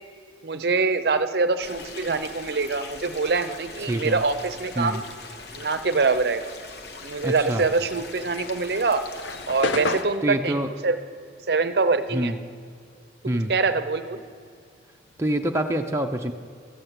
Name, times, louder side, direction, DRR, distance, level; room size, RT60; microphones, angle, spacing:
voice 1, 0.4-5.0 5.6-6.5 7.0-9.0 9.5-11.0 11.5-12.3 13.5-14.2, right 4 dB, 60° right, 11 dB, 0.6 m, -24 dB
sound 1, 1.6-10.0, left 3 dB, 60° left, 1.0 m, -41 dB
voice 2, 3.9-4.2 4.8-5.0 7.2-7.6 10.2-10.7 12.1-12.4 13.3-13.5 15.2-16.3, right 1 dB, 15° right, 2 dB, 0.5 m, -26 dB
sound 2, 8.2-12.9 13.2-15.2, left 3 dB, 85° left, 0.7 m, -33 dB
13.5 x 7.5 x 8.0 m, 2.3 s
head